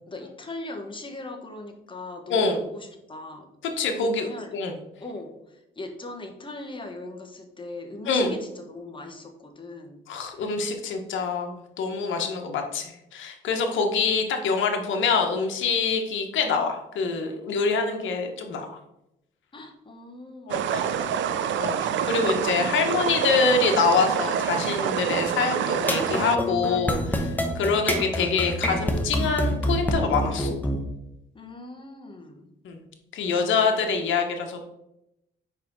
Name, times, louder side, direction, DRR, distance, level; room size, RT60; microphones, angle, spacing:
voice 1, 0.1-4.6 5.0-5.3 5.8-10.0 19.5-21.6 31.3-32.5, left 2 dB, 25° left, 4 dB, 1.2 m, -40 dB
voice 2, 3.8-4.7 8.1-8.3 10.1-18.8 20.5-20.9 21.6-27.3 27.5-30.5 32.6-32.8 33.1-34.7, left 4 dB, 75° left, 4 dB, 1.1 m, -25 dB
sound 1, 20.5-26.4, right 9 dB, 70° right, 0.5 m, -27 dB
sound 2, 25.8-30.8, equal, 10° left, 1.0 m, -26 dB
4.8 x 4.6 x 5.4 m, 0.86 s
cardioid pair, 90°, 20 cm